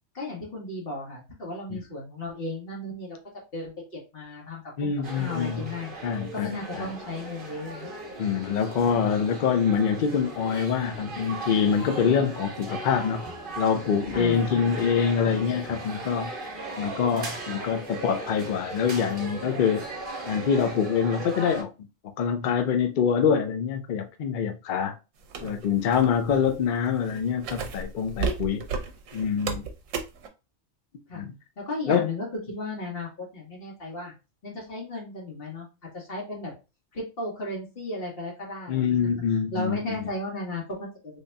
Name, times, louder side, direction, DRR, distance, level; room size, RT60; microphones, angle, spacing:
voice 1, 0.1-3.2 3.5-3.7 4.1-5.9 6.3-7.9 14.1-14.8 31.1-31.3 31.6-34.1 34.4-35.7 35.9-36.5 36.9-41.2, left 2 dB, 45° left, 1.7 m, -35 dB
voice 2, 4.8-5.6 6.0-6.5 6.8-6.9 8.2-13.2 13.6-16.3 16.8-19.9 20.3-21.7 22.2-24.9 25.4-28.6 29.1-29.6 31.1-31.3 31.9-32.1 38.7-39.8, left 7 dB, 65° left, 0.4 m, -25 dB
sound 1, 5.0-21.6, right 2 dB, 45° right, 1.2 m, -38 dB
sound 2, 25.2-30.3, right 5 dB, 75° right, 1.0 m, -33 dB
4.0 x 3.4 x 2.2 m
omnidirectional pair, 1.4 m